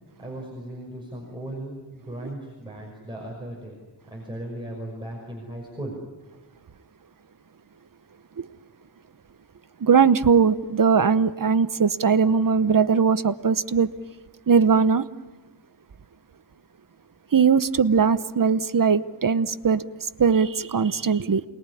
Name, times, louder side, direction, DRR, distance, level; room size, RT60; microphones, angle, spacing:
voice 1, 0.2-3.8 4.1-6.0, right 1 dB, 10° right, 5.8 m, -37 dB
voice 2, 9.8-13.9 14.5-15.0 17.3-21.4, right 6 dB, 50° right, 1.0 m, -20 dB
28.0 x 21.0 x 9.9 m
wide cardioid pair, 130°, 42 cm